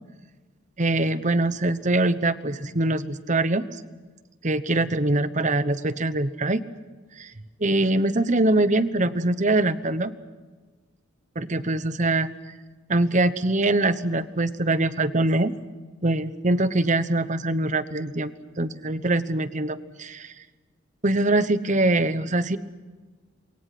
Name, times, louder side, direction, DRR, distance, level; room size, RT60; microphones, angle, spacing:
voice 1, 0.8-3.7 4.4-6.6 7.2-7.3 7.6-10.1 11.3-12.3 12.9-15.5 16.0-20.3 21.0-22.6, right 2 dB, 35° right, 13 dB, 1.1 m, -23 dB
28.5 x 23.0 x 5.9 m, 1.4 s
head